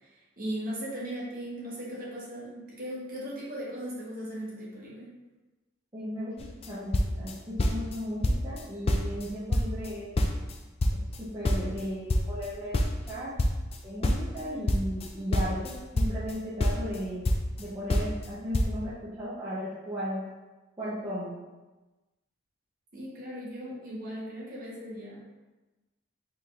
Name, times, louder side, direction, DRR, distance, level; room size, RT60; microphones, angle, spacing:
voice 1, 0.0-5.1 22.9-25.2, equal, 45° right, -6 dB, 1.2 m, -38 dB
voice 2, 5.9-10.1 11.2-12.8 13.1-13.3 13.8-17.2 17.6-20.3 20.8-21.3, equal, 20° right, -11 dB, 0.8 m, -36 dB
sound 1, 6.4-6.7 6.9-8.0 8.2-8.6 8.9-10.5 10.8-13.8 14.0-16.3 16.6-17.6 17.9-18.3 18.5-18.7, left 1 dB, 30° left, 0.3 m, -26 dB
4.4 x 3.7 x 2.5 m, 1.2 s
head